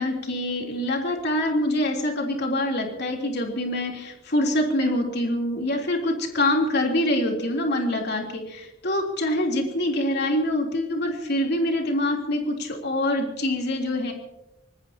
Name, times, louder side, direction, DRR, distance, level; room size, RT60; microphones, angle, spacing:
voice 1, 0.0-14.1, left 1 dB, 60° left, 1 dB, 3.3 m, -25 dB
26.0 x 19.5 x 2.9 m, 0.95 s
head